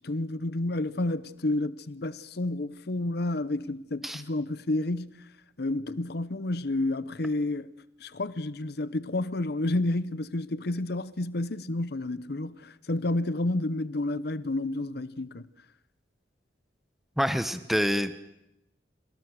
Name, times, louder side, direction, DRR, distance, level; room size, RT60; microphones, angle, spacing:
voice 1, 0.0-5.2 5.6-7.7 8.0-15.5, left 2 dB, 60° left, 0.8 m, -30 dB
voice 2, 17.2-18.2, equal, ahead, 1.1 m, -27 dB
28.5 x 17.5 x 6.6 m
head